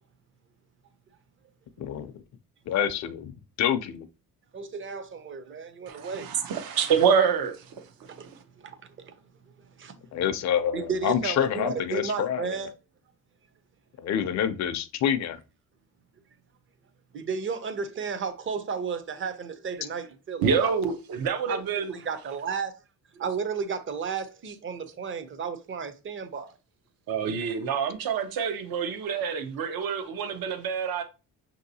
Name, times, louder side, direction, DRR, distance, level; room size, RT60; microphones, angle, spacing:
voice 1, 1.8-2.1 2.7-3.3 3.6-4.1 10.1-12.5 14.0-15.4, left 9 dB, 50° left, 0.4 m, -27 dB
voice 2, 4.5-6.3 8.2-8.3 8.6-9.2 9.8-9.9 10.7-12.7 17.1-20.8 21.5-22.8 23.1-26.6, right 5 dB, 35° right, 0.5 m, -33 dB
voice 3, 5.9-7.8 8.1-8.2 20.4-21.9 27.1-31.0, right 6 dB, 70° right, 0.7 m, -27 dB
5.9 x 2.7 x 2.7 m
cardioid pair, 140°, 36 cm